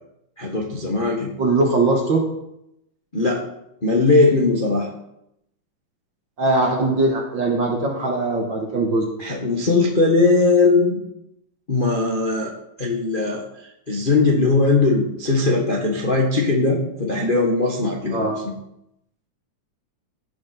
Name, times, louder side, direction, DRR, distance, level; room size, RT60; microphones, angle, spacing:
voice 1, 0.4-1.3 3.1-3.4 3.8-4.9 9.2-11.0 11.7-12.5 12.8-13.4 13.9-18.5, left 3 dB, 30° left, -1 dB, 0.9 m, -19 dB
voice 2, 1.4-2.3 6.4-9.1 18.1-18.4, right 2 dB, 45° right, 1 dB, 1.8 m, -20 dB
16.5 x 6.0 x 5.9 m, 0.81 s
omnidirectional pair, 3.7 m